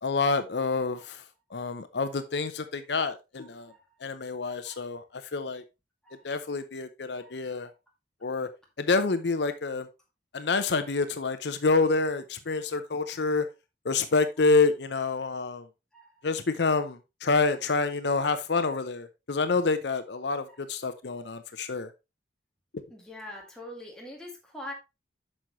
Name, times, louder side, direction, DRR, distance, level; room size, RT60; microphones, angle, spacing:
voice 1, 0.0-1.2 1.5-3.7 4.0-5.6 6.2-7.7 8.2-8.5 8.8-9.9 10.3-13.4 13.8-15.7 16.2-21.9, left 4 dB, 70° left, 0.7 m, -27 dB
voice 2, 3.4-4.0 4.6-4.9 6.0-6.4 7.2-7.4 13.0-13.3 14.4-14.5 15.9-16.3 20.5-20.6 22.9-24.7, left 1 dB, 5° left, 2.2 m, -45 dB
8.8 x 6.2 x 3.1 m
head